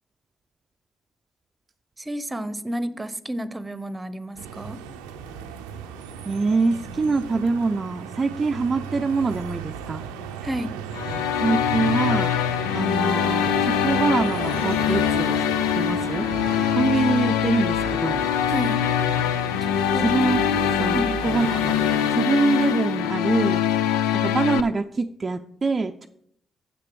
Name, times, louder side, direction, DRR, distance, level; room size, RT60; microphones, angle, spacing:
voice 1, 2.0-4.8 10.4-10.8 18.5-18.8 19.6-20.1 20.9-21.1, equal, 20° right, 14 dB, 0.9 m, -31 dB
sound 1, 4.4-22.2, right 7 dB, 90° right, 0.6 m, -35 dB
voice 2, 6.3-10.0 11.4-12.4 12.7-15.4 15.7-16.3 16.7-18.3 20.0-21.8 22.1-23.6 24.2-26.1, right 3 dB, 40° right, 5 dB, 0.5 m, -24 dB
sound 2, 10.9-24.6, left 10 dB, 80° left, 0.4 m, -23 dB
7.6 x 6.7 x 6.9 m, 0.70 s
hypercardioid pair, 45°, 0 cm